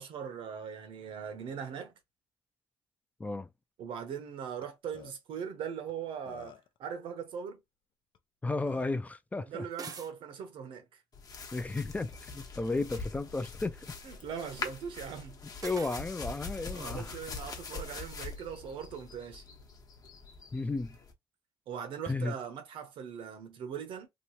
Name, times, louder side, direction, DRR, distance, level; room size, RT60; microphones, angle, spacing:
voice 1, 0.0-1.9 3.8-7.6 9.4-11.0 14.0-15.4 16.7-19.4 21.7-24.1, right 7 dB, 75° right, 0.9 m, -40 dB
Burping eructation, 4.6-4.7 4.9-5.1 5.9-6.0 6.3-6.8 8.1-8.2 8.6-9.0, left 8 dB, 65° left, 0.5 m, -50 dB
voice 2, 8.4-9.7 11.5-13.9 15.6-17.2 20.5-21.0 22.1-22.3, left 3 dB, 15° left, 0.4 m, -34 dB
sound 1, 9.7-10.1 12.6-13.0 15.6-16.1, right 5 dB, 45° right, 0.6 m, -45 dB
sound 2, 11.1-21.1, left 4 dB, 45° left, 1.0 m, -43 dB
3.0 x 2.4 x 2.9 m
cardioid pair, 90°, 9 cm